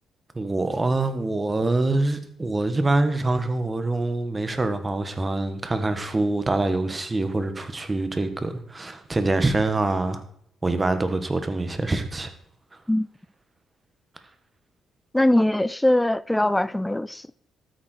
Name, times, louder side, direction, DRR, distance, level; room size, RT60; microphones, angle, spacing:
voice 1, 0.3-10.2 10.6-12.3, right 2 dB, 20° right, 1.6 m, -25 dB
voice 2, 15.1-17.3, left 1 dB, 10° left, 0.3 m, -21 dB
13.0 x 8.9 x 4.6 m
cardioid pair, 90°, 0 cm